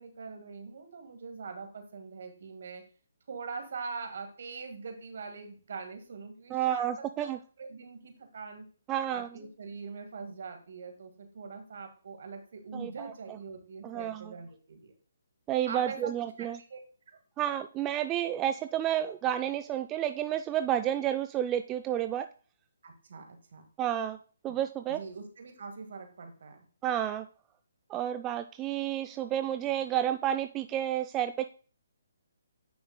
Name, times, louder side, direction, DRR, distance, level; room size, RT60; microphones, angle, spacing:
voice 1, 0.0-2.8 3.3-6.9 7.2-7.3 7.6-8.6 9.1-14.9 15.7-16.1 16.4-16.8 17.1-17.2 22.8-23.7 24.9-26.6, right 4 dB, 60° right, 6 dB, 1.7 m, -43 dB
voice 2, 6.5-7.4 8.9-9.3 12.7-12.9 13.8-14.3 15.5-16.6 17.4-22.3 23.8-24.2 24.4-25.0 26.8-27.3 27.9-31.4, right 11 dB, 20° right, 9 dB, 0.3 m, -30 dB
9.5 x 6.2 x 2.2 m, 0.40 s
hypercardioid pair, 145°, 0 cm